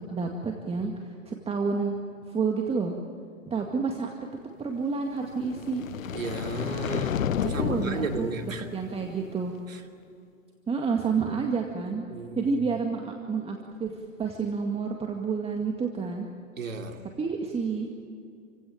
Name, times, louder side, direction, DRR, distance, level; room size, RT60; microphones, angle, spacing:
voice 1, 0.0-2.0 2.3-2.9 3.5-4.1 4.6-5.9 7.4-8.3 8.7-9.6 10.7-12.1 12.4-16.3 17.2-17.9, right 5 dB, 15° right, 2 dB, 2.1 m, -29 dB
sound 1, 5.3-9.5, left 9 dB, 85° left, 0.8 m, -32 dB
voice 2, 6.1-8.6 9.7-9.8 12.1-12.5 16.6-17.0, right 4 dB, 80° right, 4 dB, 2.8 m, -34 dB
29.0 x 16.5 x 9.0 m, 2.4 s
hypercardioid pair, 115°, 39 cm